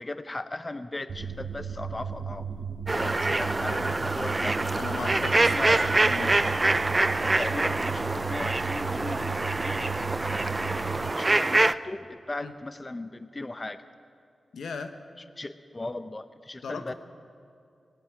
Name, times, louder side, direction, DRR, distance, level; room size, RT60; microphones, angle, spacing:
voice 1, 0.0-2.5 3.3-4.6 5.3-5.9 7.3-9.9 10.6-13.8 15.4-16.9, left 2 dB, 30° left, 12 dB, 0.6 m, -37 dB
sound 1, 1.1-11.1, right 6 dB, 75° right, 0.9 m, -35 dB
sound 2, 2.9-11.7, right 2 dB, 30° right, 0.4 m, -25 dB
voice 2, 3.0-3.4 3.7-4.0 4.7-6.4 12.4-12.5 14.5-14.9 16.6-16.9, left 5 dB, 85° left, 8 dB, 0.9 m, -38 dB
18.5 x 8.5 x 8.7 m, 2.5 s
cardioid pair, 50°, 0 cm